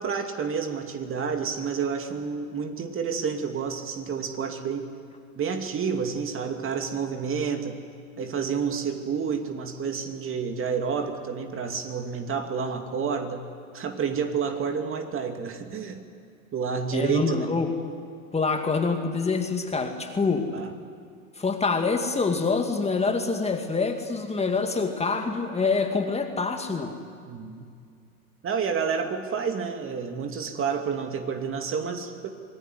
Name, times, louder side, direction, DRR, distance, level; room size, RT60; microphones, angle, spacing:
voice 1, 0.0-4.9 5.4-7.8 8.2-13.4 13.7-16.0 16.5-17.5 20.5-20.7 27.3-27.7 28.4-32.3, right 6 dB, 30° right, 5 dB, 2.5 m, -29 dB
voice 2, 16.9-17.7 18.3-20.5 21.4-27.0, left 4 dB, 15° left, 4 dB, 2.3 m, -26 dB
26.5 x 19.5 x 9.7 m, 2.2 s
hypercardioid pair, 95°, 43 cm